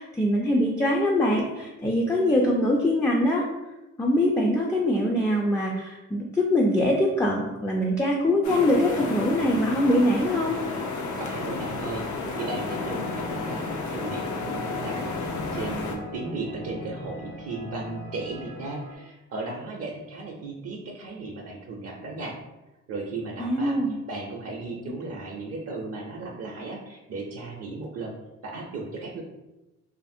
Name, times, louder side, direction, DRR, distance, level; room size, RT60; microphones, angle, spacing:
voice 1, 0.0-3.5 4.0-10.6 23.4-23.9, left 1 dB, 10° left, -2 dB, 0.3 m, -23 dB
sound 1, 8.4-16.0, left 3 dB, 75° left, 0.6 m, -32 dB
voice 2, 11.2-22.4 22.9-23.8 24.1-28.1 28.4-29.2, right 3 dB, 55° right, 0 dB, 0.5 m, -36 dB
sound 2, 12.3-19.0, left 3 dB, 90° left, 1.2 m, -38 dB
2.7 x 2.5 x 2.6 m, 1.0 s
cardioid pair, 90°, 30 cm